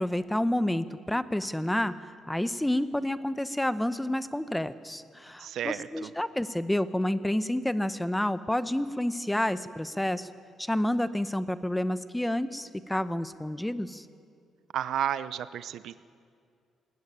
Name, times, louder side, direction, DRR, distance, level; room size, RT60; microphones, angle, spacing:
voice 1, 0.0-1.9 2.3-10.3 10.6-14.1, left 1 dB, 5° left, 13 dB, 0.8 m, -29 dB
voice 2, 5.4-6.1 14.7-15.9, right 10 dB, 75° right, 15 dB, 0.6 m, -32 dB
19.5 x 16.0 x 9.9 m, 2.3 s
cardioid pair, 100°, 0 cm